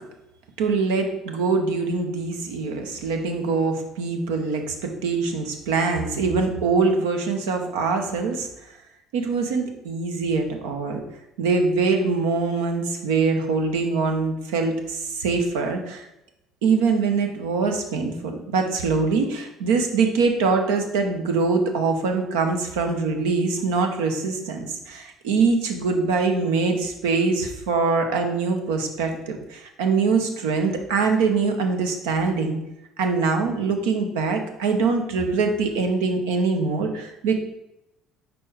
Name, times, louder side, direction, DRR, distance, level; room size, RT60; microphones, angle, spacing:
voice 1, 0.6-8.5 9.1-11.0 11.4-16.1 16.6-32.6 33.0-37.3, right 4 dB, 80° right, 4 dB, 0.8 m, -23 dB
4.6 x 4.3 x 4.8 m, 0.89 s
hypercardioid pair, 65°, 0 cm